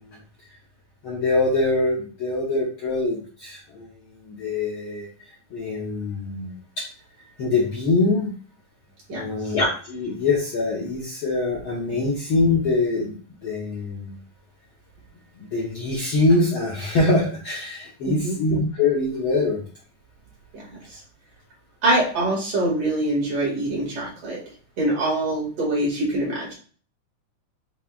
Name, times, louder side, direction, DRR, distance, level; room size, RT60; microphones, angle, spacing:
voice 1, 1.0-3.9 4.2-5.1 5.5-6.8 7.4-8.3 9.1-13.2 13.4-14.1 15.4-19.6, left 2 dB, 65° left, -4 dB, 1.3 m, -23 dB
voice 2, 18.1-18.4 20.5-20.7 21.8-24.4 24.8-26.5, right 1 dB, 60° right, -5 dB, 3.1 m, -24 dB
7.2 x 2.9 x 2.4 m, 0.41 s
omnidirectional pair, 3.5 m